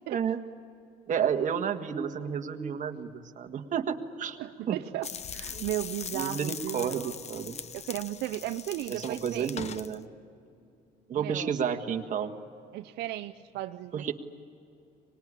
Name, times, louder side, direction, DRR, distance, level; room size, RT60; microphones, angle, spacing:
voice 1, 0.1-0.4 1.1-4.4 4.7-4.8 5.5-5.6 6.1-7.6 8.9-10.1 11.1-12.3 13.9-14.1, right 7 dB, 50° right, 5 dB, 1.8 m, -31 dB
voice 2, 4.4-7.1 7.7-9.5 11.2-11.5 12.7-14.1, right 15 dB, 80° right, 8 dB, 0.6 m, -35 dB
sound 1, 5.0-10.0, left 7 dB, 40° left, 0.9 m, -40 dB
25.0 x 20.5 x 9.9 m, 2.6 s
cardioid pair, 110°, 17 cm